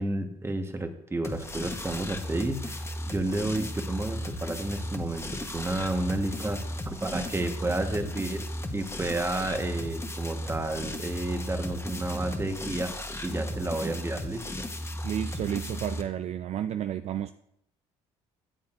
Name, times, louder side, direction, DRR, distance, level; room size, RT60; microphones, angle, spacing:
voice 1, 0.0-8.5 8.7-12.9 13.2-14.7, right 2 dB, 15° right, 1.3 m, -31 dB
sound 1, 1.2-16.0, left 1 dB, 20° left, 1.1 m, -35 dB
voice 2, 15.0-17.3, right 10 dB, 45° right, 0.4 m, -31 dB
13.0 x 7.2 x 2.5 m
supercardioid pair, 70°, 15 cm